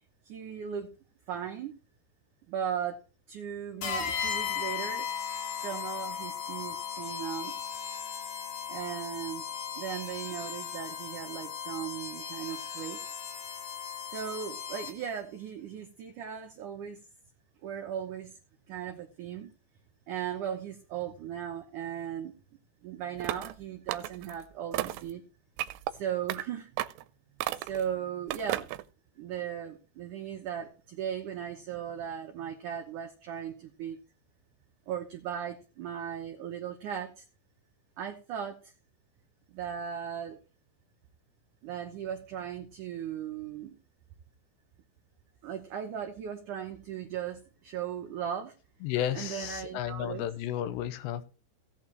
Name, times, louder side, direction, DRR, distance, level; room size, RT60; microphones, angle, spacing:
voice 1, 0.2-0.9 1.3-1.7 2.5-3.0 3.3-5.1 5.6-7.7 8.7-9.4 9.8-13.0 14.1-17.0 17.6-18.3 18.7-19.5 20.1-22.3 22.8-25.2 25.9-26.7 27.5-28.7 29.2-34.0 34.9-37.2 38.0-38.6 39.5-40.4 41.6-43.7 45.4-48.5 49.1-50.3, right 9 dB, 65° right, 2.0 m, -37 dB
sound 1, 3.8-15.2, left 7 dB, 55° left, 2.9 m, -37 dB
sound 2, 23.2-23.6 23.9-24.4 24.7-25.1 25.6-25.9 26.3-26.4 26.8-27.0 27.4-27.8 28.3-28.8, right 15 dB, 90° right, 2.9 m, -33 dB
voice 2, 48.8-51.2, left 11 dB, 85° left, 3.2 m, -33 dB
16.5 x 8.6 x 3.0 m
omnidirectional pair, 4.9 m